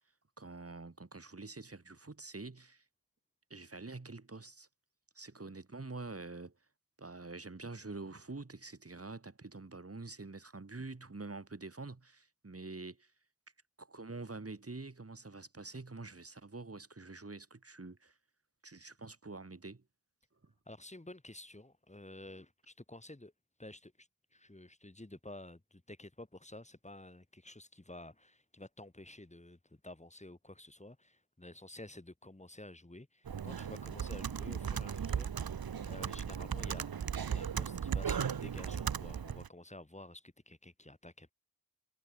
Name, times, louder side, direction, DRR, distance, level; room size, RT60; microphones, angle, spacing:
voice 1, 0.4-2.8 3.5-4.7 5.2-6.5 7.0-13.1 13.8-18.1 18.6-19.8 20.4-20.5, right 3 dB, 40° right, 5.2 m, -46 dB
voice 2, 20.7-23.3 23.6-35.3 35.8-36.9 37.3-41.3, left 1 dB, 20° left, 5.3 m, -51 dB
Computer keyboard, 33.3-39.5, right 7 dB, 70° right, 1.1 m, -37 dB
wide cardioid pair, 75°, 37 cm